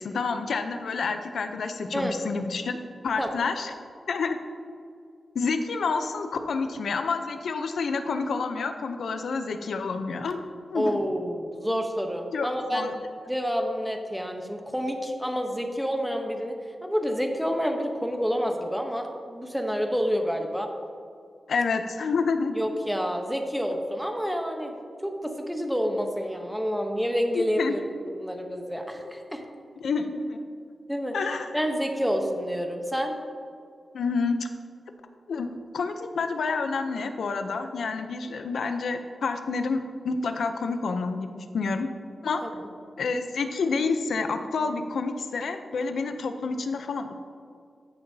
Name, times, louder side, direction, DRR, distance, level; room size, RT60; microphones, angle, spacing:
voice 1, 0.0-2.8 3.0-3.7 4.1-4.4 5.3-11.0 12.3-12.9 21.5-22.6 27.3-27.8 29.8-30.5 31.1-31.6 33.9-34.5 35.3-35.5 35.7-41.9 42.2-42.4 43.0-47.1, left 4 dB, 90° left, 7 dB, 0.6 m, -29 dB
voice 2, 10.7-12.9 13.3-20.7 22.6-24.7 25.0-27.8 28.1-29.4 30.9-31.2 31.5-33.2 42.4-42.7, equal, ahead, 3 dB, 0.9 m, -28 dB
14.0 x 6.8 x 2.8 m, 2.2 s
wide cardioid pair, 120°, 0 cm